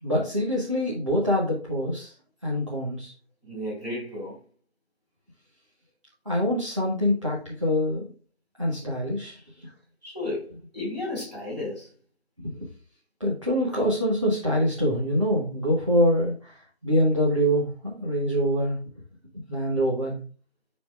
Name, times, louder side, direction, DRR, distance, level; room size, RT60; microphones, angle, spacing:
voice 1, 0.0-2.1 2.4-3.1 6.2-8.1 8.6-9.7 12.4-12.6 13.2-18.8 19.5-20.2, equal, 30° right, 1.6 m, -25 dB
voice 2, 3.4-4.4 10.0-11.9, left 2 dB, 5° right, 3.9 m, -33 dB
9.7 x 4.4 x 3.4 m
figure-of-eight pair, 175°, 34 cm